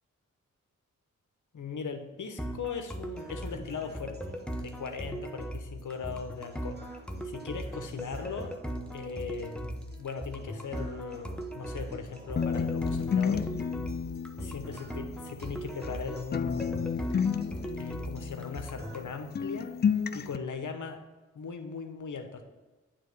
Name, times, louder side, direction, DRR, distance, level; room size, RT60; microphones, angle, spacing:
voice 1, 1.5-4.2 4.5-6.8 7.2-8.6 8.9-13.5 14.4-16.9 17.8-19.8 20.1-21.0 21.3-22.4, left 5 dB, 70° left, 6 dB, 1.1 m, -39 dB
sound 1, 2.4-19.1, right 1 dB, 5° left, 0.8 m, -39 dB
sound 2, 3.2-19.2, right 2 dB, 30° right, 1.0 m, -55 dB
sound 3, 12.4-16.0 16.3-19.1 19.3-20.4, left 6 dB, 35° left, 0.4 m, -32 dB
8.9 x 3.8 x 6.8 m, 1.2 s
cardioid pair, 55°, 31 cm